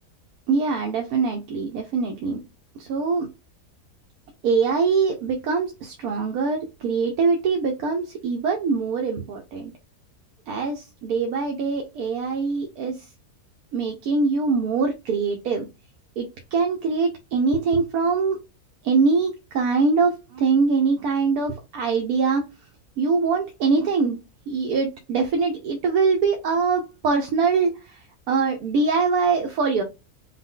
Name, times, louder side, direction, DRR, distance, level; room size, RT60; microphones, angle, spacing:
voice 1, 0.5-2.4 2.8-3.3 4.4-9.7 10.5-13.1 13.7-15.7 16.2-18.4 18.8-22.4 23.0-24.2 24.5-29.8, right 4 dB, 75° right, 3 dB, 1.2 m, -23 dB
5.4 x 2.1 x 3.7 m, 0.25 s
omnidirectional pair, 1.6 m